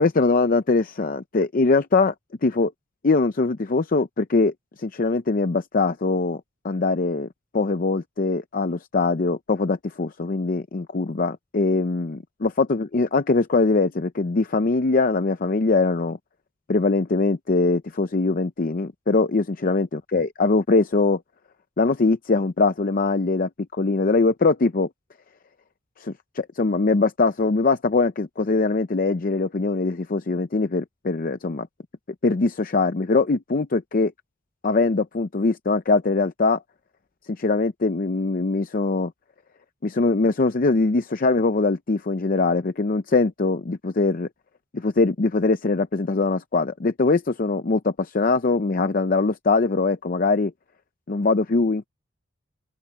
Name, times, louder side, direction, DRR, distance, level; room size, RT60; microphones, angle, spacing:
voice 1, 0.0-2.1 2.4-2.7 3.0-4.5 4.8-7.3 7.5-16.2 16.7-21.2 21.8-24.9 26.0-31.7 32.2-34.1 34.6-36.6 37.4-39.1 39.8-44.3 44.7-50.5 51.1-51.9, left 3 dB, 45° left, 0.6 m, -22 dB
open air
head